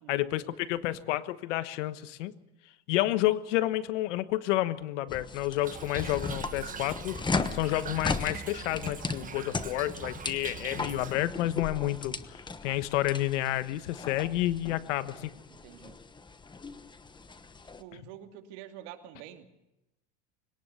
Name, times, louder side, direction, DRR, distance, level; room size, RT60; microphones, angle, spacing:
voice 1, 0.1-2.3 2.9-15.3, left 15 dB, 85° left, 13 dB, 1.3 m, -30 dB
sound 1, 5.1-17.8, left 4 dB, 15° left, 1.1 m, -37 dB
Toilet flush / Trickle dribble, 5.6-11.1, right 7 dB, 25° right, 1.2 m, -43 dB
voice 2, 15.5-16.0 17.8-19.4, right 11 dB, 75° right, 5 dB, 2.6 m, -47 dB
22.5 x 18.5 x 6.8 m, 0.93 s
supercardioid pair, 125°, 35 cm